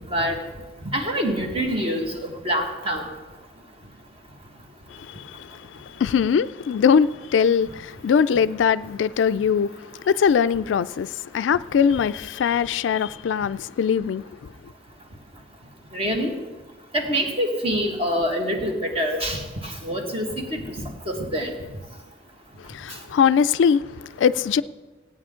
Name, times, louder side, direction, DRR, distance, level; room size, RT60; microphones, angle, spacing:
voice 1, 0.9-3.0 15.9-16.3 16.9-20.6 21.1-21.5, equal, 30° right, 1.6 m, -25 dB
voice 2, 4.9-14.3 22.6-24.6, left 7 dB, 80° left, 0.3 m, -22 dB
16.5 x 9.1 x 3.7 m
head